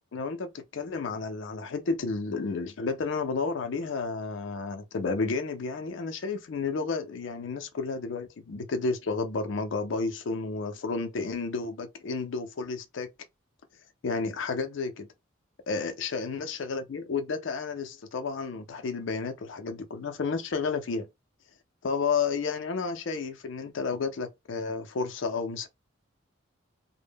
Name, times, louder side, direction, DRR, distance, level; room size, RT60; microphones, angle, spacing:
voice 1, 0.1-13.1 14.0-15.1 15.7-21.1 21.8-25.7, left 4 dB, 65° left, 0.4 m, -31 dB
2.1 x 2.0 x 3.3 m
head